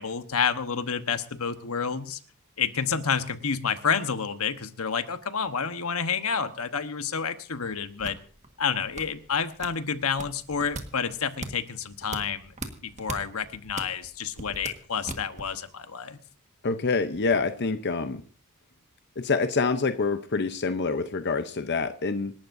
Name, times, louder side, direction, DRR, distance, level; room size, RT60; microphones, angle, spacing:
voice 1, 0.0-2.2 2.6-8.2 8.6-12.5 12.8-16.2, left 6 dB, 80° left, 9 dB, 1.2 m, -29 dB
sound 1, 7.5-15.6, right 2 dB, 35° right, 1.6 m, -40 dB
voice 2, 16.6-18.2 19.2-22.3, left 4 dB, 50° left, 8 dB, 0.8 m, -26 dB
27.0 x 12.0 x 2.7 m, 0.42 s
head